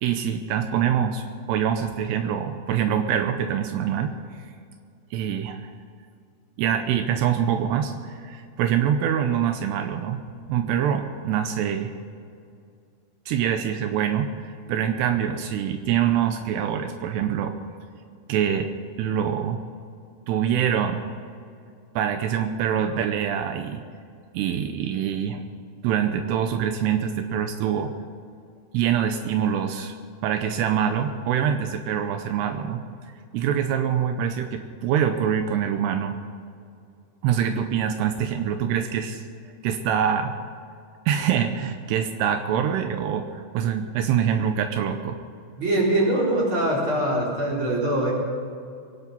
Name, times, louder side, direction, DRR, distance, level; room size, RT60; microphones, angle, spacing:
voice 1, 0.0-4.1 5.1-5.6 6.6-10.2 10.5-11.9 13.3-17.6 18.3-18.7 19.0-19.6 20.3-21.1 22.0-23.8 24.3-25.4 25.8-27.9 28.7-30.0 30.2-32.8 33.3-36.2 37.2-39.2 39.6-40.3 41.1-45.2, right 8 dB, 85° right, 7 dB, 2.9 m, -25 dB
voice 2, 45.6-48.1, right 1 dB, 30° right, -4 dB, 4.4 m, -23 dB
23.5 x 10.5 x 5.4 m, 2.4 s
omnidirectional pair, 4.8 m